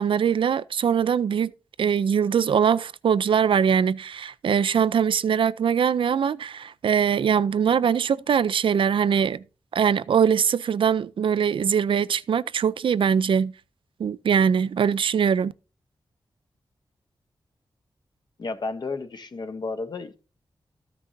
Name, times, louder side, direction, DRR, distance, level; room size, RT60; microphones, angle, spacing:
voice 1, 0.0-1.5 1.8-9.4 9.7-13.5 14.0-15.5, right 7 dB, 75° right, 0.4 m, -22 dB
voice 2, 18.4-20.2, left 3 dB, 55° left, 0.9 m, -32 dB
14.0 x 6.0 x 2.7 m
wide cardioid pair, 125°, 9 cm